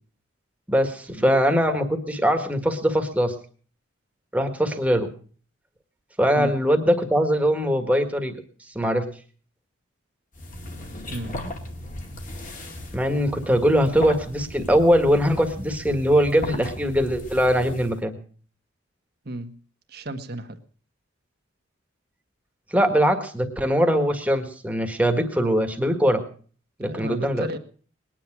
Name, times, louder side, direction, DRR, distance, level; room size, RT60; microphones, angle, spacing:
voice 1, 0.7-3.3 4.3-5.1 6.2-8.4 8.7-9.1 12.9-18.2 22.7-26.2 26.8-27.5, equal, 5° right, 5 dB, 1.7 m, -21 dB
sound 1, 10.3-18.0, left 1 dB, 40° left, 2.1 m, -37 dB
voice 2, 19.9-20.6 26.8-27.6, right 1 dB, 50° right, 6 dB, 1.5 m, -33 dB
20.5 x 10.0 x 6.1 m, 0.43 s
head